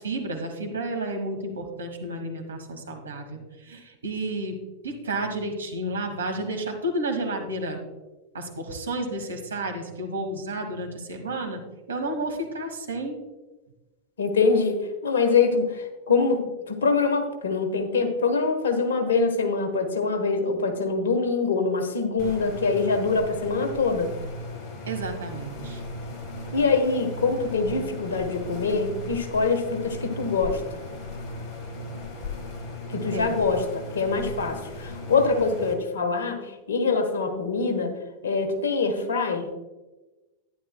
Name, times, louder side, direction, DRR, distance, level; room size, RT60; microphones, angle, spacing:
voice 1, 0.0-3.4 3.7-4.6 4.8-7.8 8.3-11.6 11.9-13.2 24.9-25.8 33.1-33.4, right 1 dB, 70° right, 3 dB, 1.5 m, -31 dB
voice 2, 14.2-16.4 16.7-24.1 26.5-30.8 32.9-37.9 38.2-39.5, left 4 dB, 65° left, 5 dB, 1.3 m, -24 dB
sound 1, 22.2-35.7, left 1 dB, 35° left, 1.8 m, -37 dB
11.5 x 10.0 x 2.3 m, 1.1 s
figure-of-eight pair, 90°, 0 cm